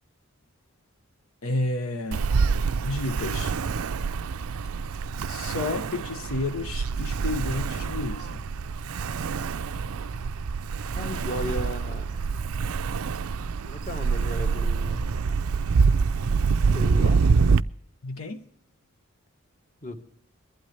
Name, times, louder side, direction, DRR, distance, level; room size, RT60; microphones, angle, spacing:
voice 1, 1.4-2.3 2.8-3.5 5.3-8.5 18.0-18.4, left 2 dB, 80° left, 1.0 m, -31 dB
Ocean, 2.1-17.6, right 5 dB, 85° right, 0.5 m, -26 dB
voice 2, 10.9-12.1 13.6-15.1 16.7-17.2 19.8-20.0, left 1 dB, 35° left, 1.4 m, -35 dB
22.5 x 12.0 x 3.3 m
head